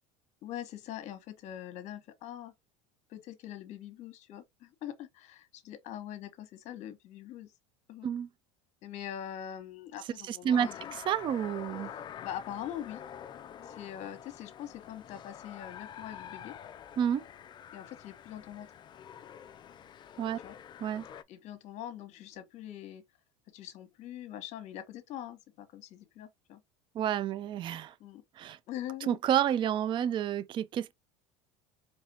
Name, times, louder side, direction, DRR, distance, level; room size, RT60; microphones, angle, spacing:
voice 1, 0.4-2.5 3.1-7.5 7.9-8.1 8.8-11.0 12.0-13.0 13.6-16.5 17.7-18.7 20.4-20.6 21.3-23.0 23.5-26.6 28.0-28.2 28.7-29.2, left 11 dB, 50° left, 1.1 m, -43 dB
voice 2, 10.3-11.9 17.0-17.2 20.2-20.4 20.8-21.0 27.0-27.9 28.4-28.6 29.1-30.9, right 9 dB, 35° right, 0.4 m, -30 dB
sound 1, 10.5-21.2, left 9 dB, 30° left, 0.4 m, -47 dB
4.1 x 3.2 x 2.8 m
supercardioid pair, 110°, 15 cm